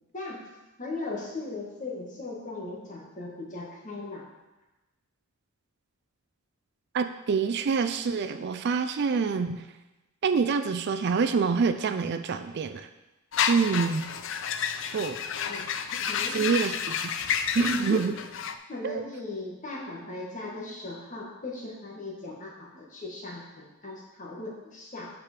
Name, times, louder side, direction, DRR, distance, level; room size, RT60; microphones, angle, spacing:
voice 1, 0.8-4.3 15.5-15.6 16.1-16.5 17.6-18.0 18.7-25.1, left 2 dB, 35° left, -3 dB, 1.6 m, -38 dB
voice 2, 6.9-9.6 10.2-12.9 13.5-14.1 14.9-15.2 16.3-17.0 17.5-18.1 18.8-19.0, right 5 dB, 50° right, 9 dB, 0.4 m, -26 dB
sound 1, 13.3-18.5, left 7 dB, 60° left, 0.4 m, -30 dB
5.8 x 4.9 x 6.6 m, 1.0 s
head